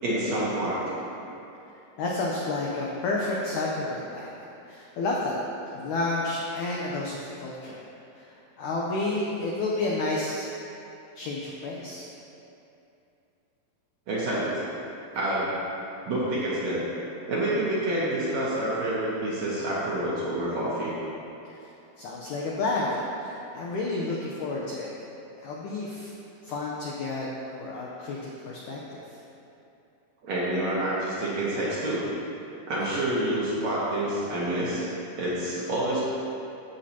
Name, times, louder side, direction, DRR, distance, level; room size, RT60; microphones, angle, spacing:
voice 1, 0.0-1.1 14.1-14.7 15.1-15.7 16.1-16.8 17.3-20.9 30.2-32.0 32.7-34.9 35.2-36.0, right 1 dB, 60° right, -8 dB, 2.0 m, -28 dB
voice 2, 2.0-4.3 4.7-5.4 5.7-7.8 8.2-8.3 8.6-10.5 11.2-12.1 22.0-24.9 25.4-26.1 26.4-29.0, left 2 dB, 80° left, -3 dB, 1.7 m, -30 dB
13.5 x 8.3 x 2.8 m, 2.8 s
omnidirectional pair, 4.6 m